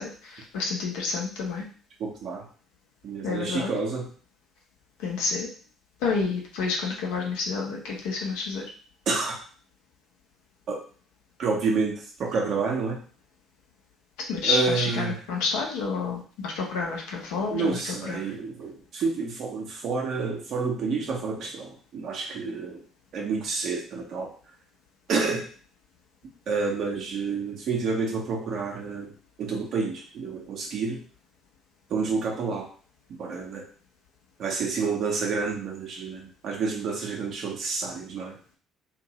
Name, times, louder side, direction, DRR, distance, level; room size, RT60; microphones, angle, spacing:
voice 1, 0.0-1.6 3.2-3.7 5.0-5.5 6.0-8.6 14.2-18.3, left 4 dB, 70° left, 0 dB, 0.7 m, -29 dB
voice 2, 2.0-2.5 3.0-4.0 9.1-9.4 10.7-10.8 11.4-13.0 14.4-15.2 17.5-22.8 23.1-24.3 25.1-25.5 26.5-29.1 29.4-31.0 31.9-32.7 33.2-33.7 34.4-38.4, right 4 dB, 55° right, 0 dB, 0.7 m, -29 dB
2.6 x 2.5 x 3.0 m, 0.41 s
figure-of-eight pair, 50°, 0 cm